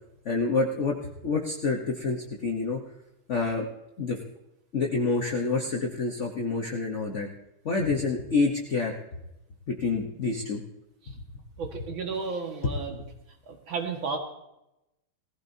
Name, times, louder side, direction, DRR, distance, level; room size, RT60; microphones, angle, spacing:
voice 1, 0.2-2.8 3.3-3.6 4.0-4.2 4.7-7.3 7.6-8.9 9.7-10.6 12.6-12.7 13.0-13.1, left 4 dB, 45° left, 1 dB, 1.2 m, -27 dB
voice 2, 11.6-13.0 13.5-14.2, right 4 dB, 75° right, 3 dB, 2.5 m, -33 dB
19.5 x 15.5 x 2.8 m, 0.89 s
omnidirectional pair, 2.2 m